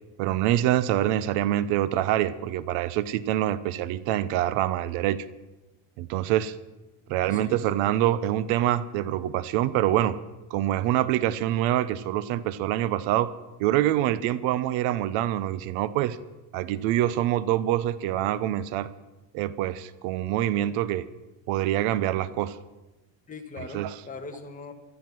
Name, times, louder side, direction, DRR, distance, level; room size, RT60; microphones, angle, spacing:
voice 1, 0.2-5.3 6.0-6.6 7.1-10.2 10.5-13.3 13.6-16.2 16.5-18.9 19.3-21.1 21.5-22.6 23.7-23.9, right 13 dB, 75° right, 16 dB, 1.0 m, -25 dB
voice 2, 7.1-7.6 23.3-24.7, left 4 dB, 15° left, 3 dB, 1.8 m, -41 dB
16.5 x 12.5 x 6.2 m, 1.1 s
cardioid pair, 120°, 50 cm